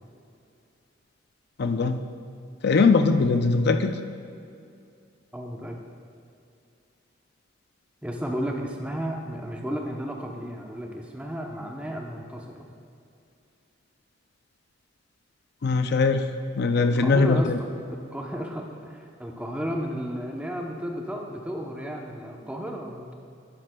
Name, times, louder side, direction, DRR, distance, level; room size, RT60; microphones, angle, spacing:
voice 1, 1.6-2.0 2.6-4.0 15.6-16.2 16.5-17.6, left 4 dB, 55° left, 8 dB, 0.5 m, -21 dB
voice 2, 5.3-5.8 8.0-12.7 16.8-23.2, equal, 5° right, 1 dB, 0.8 m, -33 dB
11.0 x 9.9 x 2.3 m, 2.5 s
head